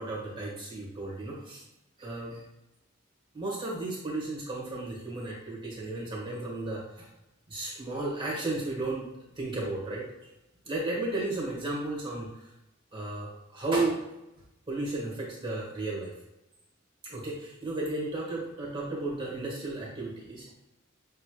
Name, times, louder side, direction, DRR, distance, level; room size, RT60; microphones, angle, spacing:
voice 1, 0.0-1.6 2.0-2.4 3.3-7.1 7.5-9.1 9.4-10.1 10.7-12.3 12.9-14.0 14.7-16.1 17.0-20.5, right 2 dB, 25° right, -5 dB, 1.4 m, -33 dB
6.4 x 3.1 x 2.2 m, 0.91 s
head